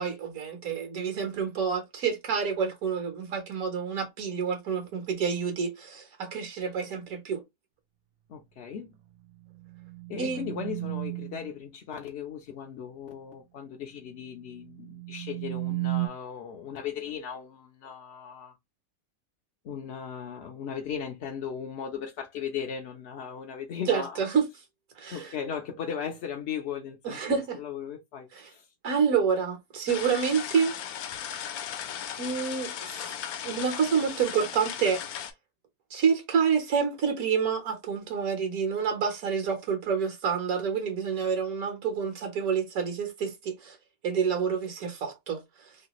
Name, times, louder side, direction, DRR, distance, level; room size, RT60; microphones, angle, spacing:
voice 1, 0.0-7.4 10.2-10.4 23.9-24.5 25.0-25.3 27.0-27.6 28.3-28.5 28.8-30.7 32.2-33.1 33.4-35.0 35.9-43.8 44.0-45.4, right 6 dB, 70° right, 1.4 m, -28 dB
voice 2, 8.3-8.9 10.1-18.5 19.6-24.2 25.1-28.7, left 7 dB, 60° left, 0.7 m, -37 dB
sound 1, 9.2-11.5 14.5-16.1, right 23 dB, 55° right, 0.7 m, -34 dB
sound 2, 29.9-35.3, left 9 dB, 80° left, 1.1 m, -37 dB
3.2 x 2.4 x 2.9 m
omnidirectional pair, 1.6 m